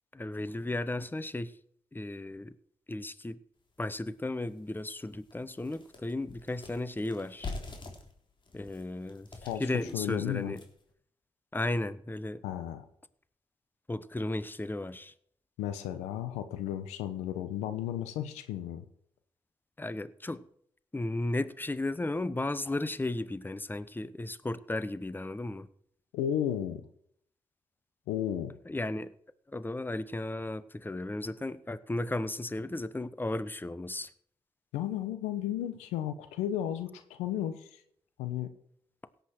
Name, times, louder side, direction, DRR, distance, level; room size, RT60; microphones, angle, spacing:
voice 1, 0.1-1.5 1.9-2.5 2.9-3.4 3.8-7.5 8.5-9.3 9.6-10.6 11.5-12.4 13.9-15.1 19.8-20.4 20.9-25.7 28.7-29.1 29.5-34.1, left 2 dB, 15° left, 16 dB, 1.0 m, -34 dB
sound 1, 3.8-3.9 4.4-4.5 4.9-10.9, left 3 dB, 45° left, 3.4 m, -45 dB
voice 2, 9.9-10.5 12.4-12.8 15.6-18.8 26.1-26.8 28.1-28.5 34.7-37.8 38.2-38.5, left 11 dB, 90° left, 11 dB, 1.0 m, -33 dB
17.0 x 8.1 x 4.5 m, 0.66 s
hypercardioid pair, 40°, 11 cm